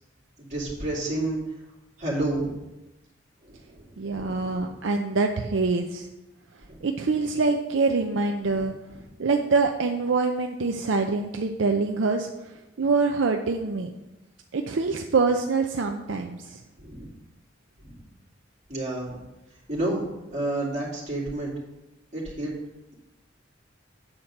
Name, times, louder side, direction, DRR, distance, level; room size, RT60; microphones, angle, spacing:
voice 1, 0.4-1.4 2.0-2.6 3.4-4.7 6.7-6.8 8.5-8.6 16.8-17.1 17.8-18.0 18.7-19.2 19.7-20.0 20.3-21.5 22.1-22.5, right 2 dB, 40° right, -4 dB, 2.7 m, -30 dB
voice 2, 4.0-6.1 6.8-8.7 9.2-13.9 14.5-16.6, right 4 dB, 70° right, 4 dB, 0.5 m, -25 dB
8.7 x 4.4 x 6.5 m, 1.0 s
head